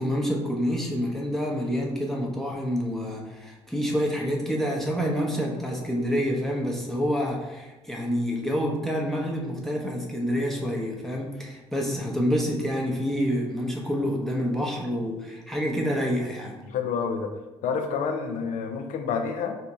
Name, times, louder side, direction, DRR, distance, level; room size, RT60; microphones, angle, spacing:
voice 1, 0.0-16.6, equal, ahead, -2 dB, 0.8 m, -27 dB
voice 2, 16.7-19.6, left 6 dB, 55° left, 6 dB, 0.5 m, -29 dB
3.4 x 2.8 x 4.1 m, 1.1 s
figure-of-eight pair, 45°, 16 cm